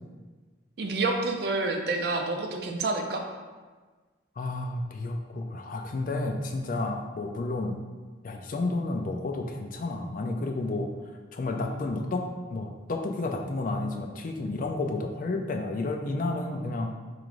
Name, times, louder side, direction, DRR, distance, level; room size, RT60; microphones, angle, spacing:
voice 1, 0.8-3.2, right 3 dB, 60° right, 3 dB, 0.4 m, -28 dB
voice 2, 4.4-7.7 8.2-10.9 11.3-16.9, left 2 dB, 45° left, 3 dB, 0.4 m, -31 dB
4.8 x 3.0 x 2.5 m, 1.4 s
head